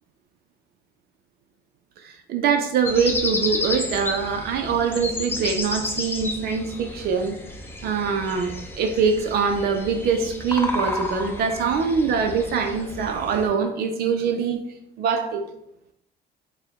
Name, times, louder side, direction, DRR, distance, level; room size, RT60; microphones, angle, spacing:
voice 1, 2.0-7.4 7.8-14.6 15.0-15.4, right 5 dB, 65° right, 5 dB, 0.5 m, -23 dB
sound 1, 2.8-13.5, left 2 dB, 15° left, 0.6 m, -31 dB
4.7 x 2.2 x 3.5 m, 0.77 s
cardioid pair, 110°, 17 cm